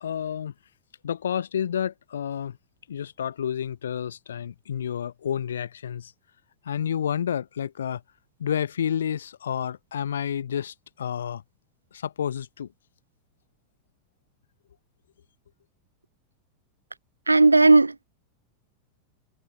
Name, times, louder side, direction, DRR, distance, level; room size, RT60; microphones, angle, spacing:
voice 1, 0.0-0.5 1.0-2.6 2.9-6.1 6.6-8.0 8.4-11.4 11.9-12.7, left 9 dB, 65° left, 1.2 m, -30 dB
voice 2, 17.3-18.0, right 3 dB, 80° right, 0.4 m, -16 dB
figure-of-eight pair, 90°, 0 cm